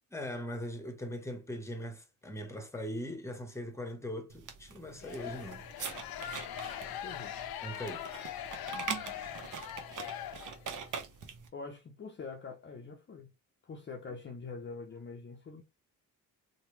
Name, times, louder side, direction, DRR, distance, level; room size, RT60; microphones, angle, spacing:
voice 1, 0.1-5.6 7.6-8.1, equal, 5° left, 0.9 m, -40 dB
sound 1, 4.3-11.5, right 6 dB, 50° right, 0.9 m, -43 dB
sound 2, 5.0-10.9, left 10 dB, 65° left, 0.6 m, -42 dB
voice 2, 6.9-7.4 11.5-13.3 13.6-15.6, left 4 dB, 30° left, 0.6 m, -44 dB
3.0 x 2.2 x 3.1 m
supercardioid pair, 65°, 39 cm